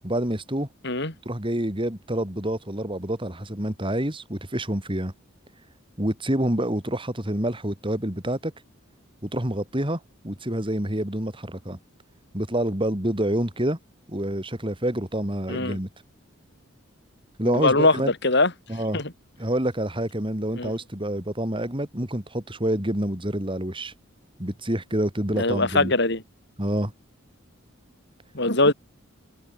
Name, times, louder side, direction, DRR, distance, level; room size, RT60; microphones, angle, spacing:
voice 1, 0.0-0.7 1.3-5.1 6.0-8.5 9.2-11.8 12.3-13.8 14.1-15.9 17.4-18.1 18.7-19.0 19.4-23.9 24.4-25.9 26.6-26.9, right 1 dB, 25° right, 3.6 m, -27 dB
voice 2, 17.4-18.5 18.9-19.1 20.6-20.7 25.3-26.2 28.3-28.7, left 2 dB, 55° left, 6.6 m, -22 dB
open air
head